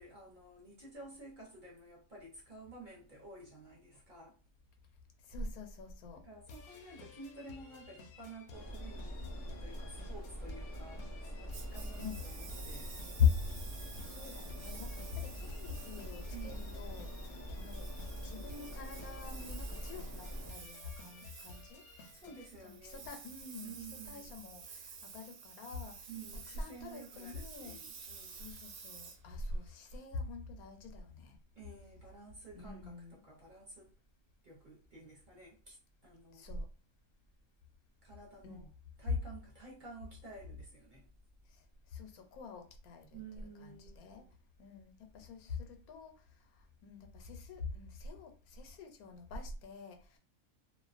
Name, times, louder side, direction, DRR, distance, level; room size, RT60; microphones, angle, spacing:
voice 1, 0.0-4.4 6.1-13.0 16.3-16.9 22.1-23.1 23.6-24.4 26.1-28.4 31.6-33.9 34.4-35.8 36.0-36.5 38.0-38.6 39.0-41.1 43.1-44.2, right 3 dB, 45° right, 0.7 m, -52 dB
voice 2, 5.3-6.2 12.0-12.2 13.2-13.5 14.0-17.9 18.2-21.8 22.6-26.0 26.3-27.8 28.2-31.4 32.5-33.2 36.3-36.7 38.4-38.7 41.9-44.3 44.6-46.2 46.8-50.2, left 6 dB, 85° left, 1.1 m, -41 dB
sound 1, 6.5-22.4, left 3 dB, 65° left, 0.7 m, -55 dB
sound 2, 8.5-20.5, equal, 20° left, 0.4 m, -44 dB
Engine, 11.5-30.0, right 6 dB, 70° right, 0.9 m, -52 dB
2.5 x 2.1 x 2.4 m
omnidirectional pair, 1.5 m